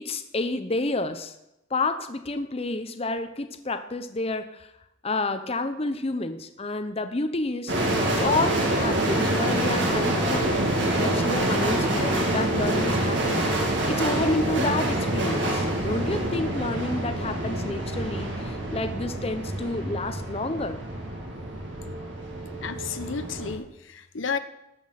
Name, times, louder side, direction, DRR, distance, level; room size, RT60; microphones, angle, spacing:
voice 1, 0.0-1.3 1.7-4.7 5.0-7.7 8.1-10.7 11.0-13.4 13.9-20.8, left 2 dB, 30° left, 9 dB, 0.7 m, -29 dB
sound 1, 7.7-23.6, right 1 dB, 60° right, 2.4 m, -26 dB
voice 2, 22.6-24.4, left 5 dB, 80° left, 11 dB, 0.8 m, -32 dB
12.5 x 6.2 x 7.5 m, 0.86 s
head